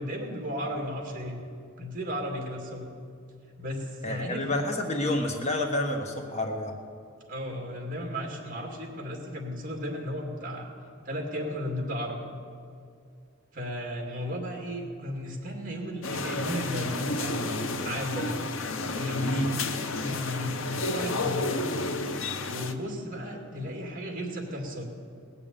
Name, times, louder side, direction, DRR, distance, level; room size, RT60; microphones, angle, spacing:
voice 1, 0.0-1.4 1.8-2.9 3.6-4.4 7.3-10.7 11.0-12.3 13.5-18.3 18.9-21.6 22.4-24.9, equal, 40° right, 1 dB, 2.4 m, -34 dB
voice 2, 4.0-6.7 19.2-19.5, left 1 dB, 35° left, 3 dB, 1.2 m, -29 dB
sound 1, 16.0-22.7, left 2 dB, 65° left, 0.8 m, -31 dB
19.0 x 6.9 x 8.9 m, 2.3 s
head